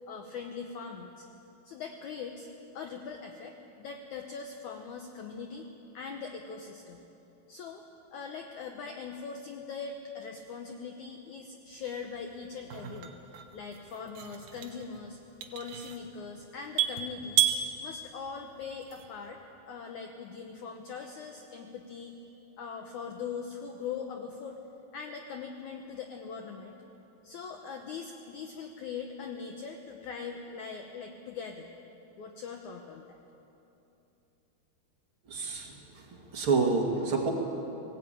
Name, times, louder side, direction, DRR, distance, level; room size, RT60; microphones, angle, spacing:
voice 1, 0.1-1.3 1.6-2.5 2.8-7.0 7.5-7.8 8.1-15.2 15.5-17.5 17.8-19.4 19.7-22.2 22.6-24.6 24.9-26.8 27.2-31.7 32.2-33.2, left 5 dB, 75° left, 3 dB, 1.8 m, -41 dB
sound 1, 11.8-19.3, right 9 dB, 65° right, 2.2 m, -34 dB
voice 2, 35.3-37.3, right 4 dB, 45° right, 0 dB, 2.0 m, -29 dB
18.0 x 18.0 x 8.9 m, 3.0 s
omnidirectional pair, 4.6 m